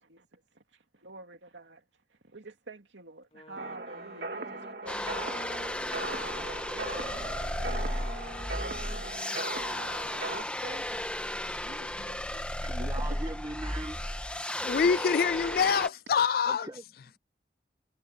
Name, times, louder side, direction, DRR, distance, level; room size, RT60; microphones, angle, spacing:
voice 1, 0.0-1.8 2.1-11.2 11.4-12.5 13.0-13.2 14.8-15.4, right 2 dB, 85° right, 2.8 m, -48 dB
Wind instrument woodwind instrument, 3.2-11.1, left 1 dB, 30° left, 2.5 m, -52 dB
sound 1, 3.6-10.4, right 2 dB, 60° right, 2.2 m, -39 dB
sound 2, 4.9-15.9, left 1 dB, 5° left, 1.5 m, -34 dB
voice 2, 12.6-14.0 16.5-16.8, right 1 dB, 20° right, 2.0 m, -40 dB
voice 3, 14.6-16.7, left 6 dB, 55° left, 0.3 m, -25 dB
head